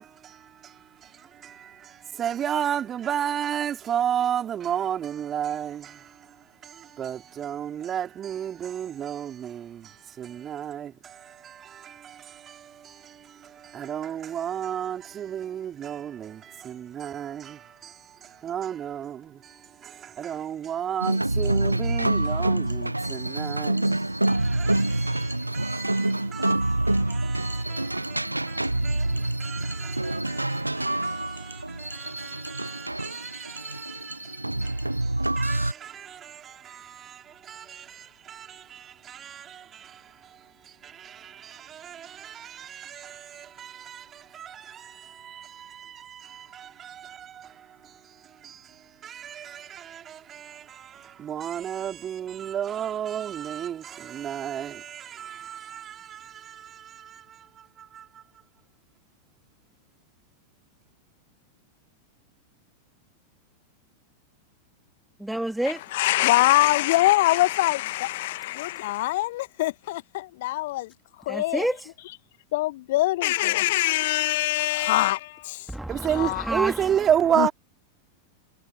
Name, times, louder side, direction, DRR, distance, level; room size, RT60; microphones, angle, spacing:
voice 1, 0.0-6.4 6.6-58.2 75.9-77.5, right 9 dB, 25° right, 4.9 m, -33 dB
sound 1, 21.0-35.7, right 1 dB, 85° right, 0.9 m, -26 dB
voice 2, 65.2-65.9 71.3-71.9 75.7-77.4, right 1 dB, 5° right, 3.8 m, -30 dB
voice 3, 65.9-70.9 71.2-71.6 72.5-75.7 76.1-76.4 77.4-77.5, left 17 dB, 55° left, 1.5 m, -23 dB
figure-of-eight pair, 90°, 0 cm